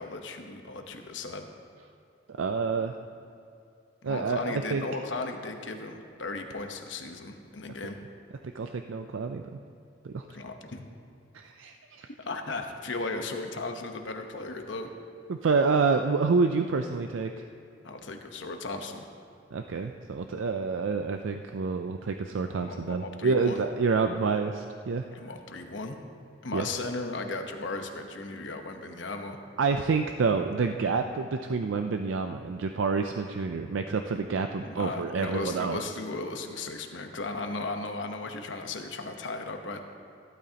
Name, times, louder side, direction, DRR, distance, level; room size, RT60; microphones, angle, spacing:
voice 1, 0.0-1.5 4.0-8.0 10.3-10.9 12.2-14.9 17.8-19.0 22.6-23.6 25.1-26.0 26.4-29.4 34.6-39.8, left 3 dB, 75° left, 5 dB, 1.0 m, -36 dB
voice 2, 2.3-2.9 4.0-4.8 8.5-9.6 10.0-10.4 11.3-12.1 15.3-17.3 19.5-25.0 26.5-26.7 29.6-35.8, right 4 dB, 90° right, 6 dB, 0.4 m, -28 dB
15.0 x 12.5 x 2.9 m, 2.5 s
head